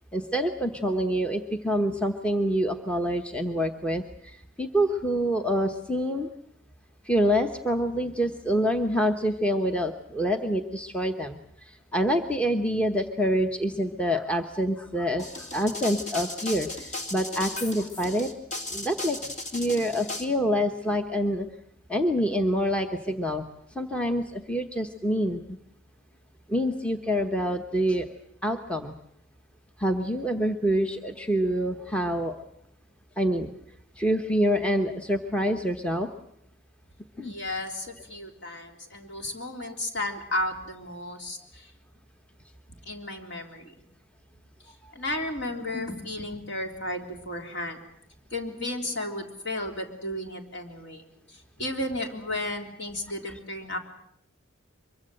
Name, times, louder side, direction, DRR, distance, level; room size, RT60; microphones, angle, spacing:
voice 1, 0.1-6.3 7.0-18.3 18.7-21.5 21.9-23.5 23.7-25.6 26.5-28.1 28.4-28.9 29.8-32.4 33.2-33.5 34.0-36.1 37.2-37.3 45.7-46.0 53.3-53.4, equal, 5° left, 4 dB, 1.0 m, -26 dB
sound 1, 15.2-20.2, left 2 dB, 35° left, 2.4 m, -36 dB
voice 2, 37.2-41.7 42.9-43.7 44.9-47.8 48.3-51.0 51.3-53.8, left 1 dB, 55° left, 3 dB, 3.5 m, -33 dB
24.0 x 23.0 x 7.7 m, 0.73 s
head